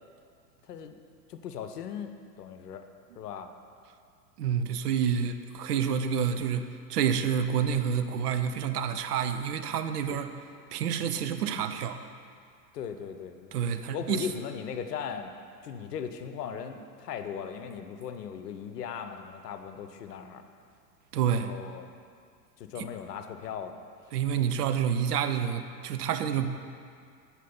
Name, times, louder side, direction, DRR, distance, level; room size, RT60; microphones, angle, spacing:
voice 1, 0.6-1.0 1.3-2.8 3.1-3.5 10.1-10.2 12.7-13.6 13.9-15.3 15.6-20.4 21.3-21.9 22.6-23.8, left 7 dB, 70° left, 7 dB, 0.8 m, -38 dB
voice 2, 4.4-10.3 10.7-12.0 13.5-14.3 21.1-21.5 22.8-22.9 24.1-26.5, right 8 dB, 65° right, 9 dB, 0.7 m, -28 dB
8.4 x 4.4 x 5.3 m, 2.3 s
hypercardioid pair, 100°, 50 cm